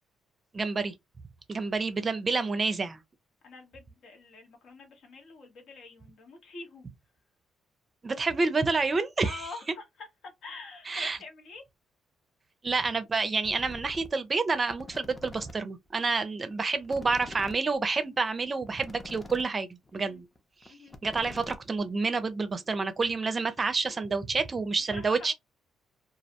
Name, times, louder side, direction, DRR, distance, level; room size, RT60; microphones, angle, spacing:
voice 1, 0.5-0.9 1.5-3.0 8.0-9.4 10.9-11.2 12.6-20.3 21.0-25.3, right 4 dB, 30° right, 0.5 m, -28 dB
voice 2, 3.4-6.9 9.2-11.6 19.9-20.2 20.7-21.0 24.9-25.3, left 3 dB, 70° left, 1.0 m, -46 dB
sound 1, 13.4-14.1 14.5-15.5 15.9-16.0 16.1-16.2 16.5-16.6 16.8-19.5 19.8-20.0 20.3-20.4 20.6-22.0, left 2 dB, 20° left, 0.6 m, -45 dB
2.3 x 2.1 x 2.8 m
cardioid pair, 90°, 0 cm